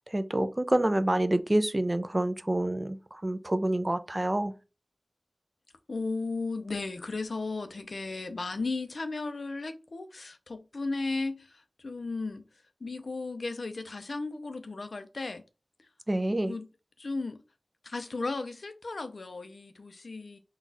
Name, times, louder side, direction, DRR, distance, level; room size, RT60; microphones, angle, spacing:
voice 1, 0.1-4.5 16.1-16.5, right 1 dB, 25° right, 0.4 m, -27 dB
voice 2, 5.9-12.4 12.8-15.4 16.3-16.7 17.0-17.4 17.8-20.4, left 3 dB, 75° left, 0.5 m, -35 dB
4.0 x 2.4 x 4.0 m
wide cardioid pair, 70°, 0 cm